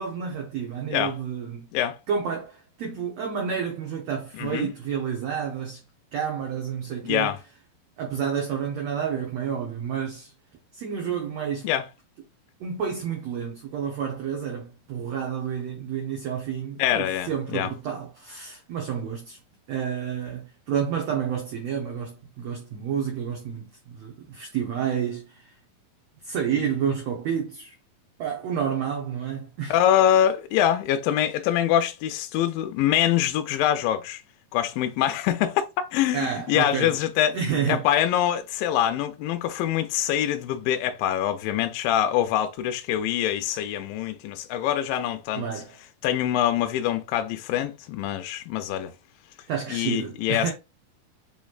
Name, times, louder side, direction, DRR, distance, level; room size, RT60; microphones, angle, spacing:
voice 1, 0.0-1.7 2.1-5.8 6.1-7.3 8.0-10.3 10.7-11.7 12.6-19.4 19.7-25.5 26.2-27.7 28.2-29.7 36.1-37.0 37.3-37.8 45.4-45.8 49.5-50.5, right 7 dB, 75° right, 1.5 m, -30 dB
voice 2, 4.4-4.7 7.0-7.4 11.6-11.9 16.8-17.7 29.7-34.2 34.5-35.6 35.9-37.4 37.7-45.4 46.0-48.9 49.7-50.5, left 11 dB, 80° left, 2.1 m, -24 dB
6.9 x 3.1 x 2.4 m
omnidirectional pair, 4.2 m